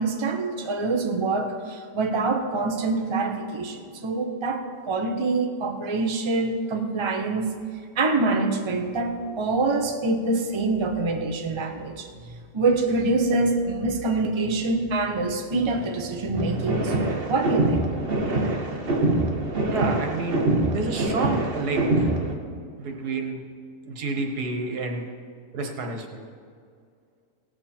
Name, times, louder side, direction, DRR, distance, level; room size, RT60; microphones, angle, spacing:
voice 1, 0.0-7.5 8.0-12.1 12.5-17.9, right 3 dB, 25° right, 4 dB, 0.7 m, -25 dB
sound 1, 16.3-22.3, right 2 dB, 40° right, 1.2 m, -24 dB
voice 2, 19.7-22.1 22.8-23.4 23.9-25.0 25.5-26.2, right 3 dB, 85° right, 3 dB, 1.8 m, -29 dB
17.0 x 7.9 x 4.4 m, 2.2 s
omnidirectional pair, 1.6 m